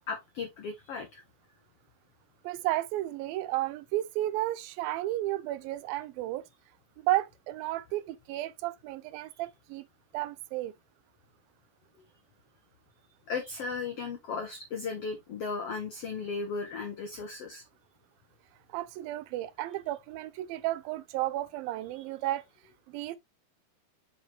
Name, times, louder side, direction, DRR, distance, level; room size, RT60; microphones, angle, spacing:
voice 1, 0.1-1.2 13.3-17.6 21.9-22.0, left 4 dB, 90° left, 1.3 m, -36 dB
voice 2, 2.4-6.4 7.0-9.9 10.1-10.7 18.7-22.5 22.9-23.2, right 15 dB, 85° right, 2.3 m, -33 dB
5.9 x 5.1 x 3.3 m
omnidirectional pair, 4.2 m